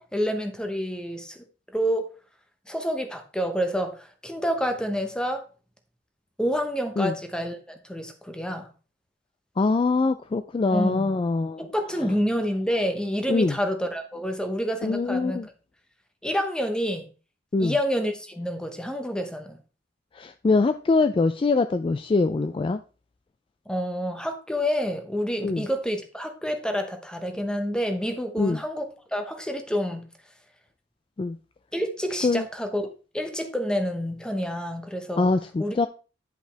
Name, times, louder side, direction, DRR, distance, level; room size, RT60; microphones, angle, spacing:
voice 1, 0.0-1.4 1.7-2.1 2.7-5.4 6.4-8.7 10.7-11.2 11.6-15.4 16.2-17.1 17.6-19.6 23.7-30.1 31.7-32.8 33.1-35.3 35.6-35.7, equal, 5° left, 0.9 m, -28 dB
voice 2, 9.6-11.7 13.3-13.6 14.8-15.5 17.5-17.8 20.1-22.8 25.4-25.6 28.4-28.6 31.2-31.4 32.2-32.5 35.2-35.9, left 3 dB, 30° left, 0.3 m, -23 dB
10.0 x 5.4 x 3.3 m
head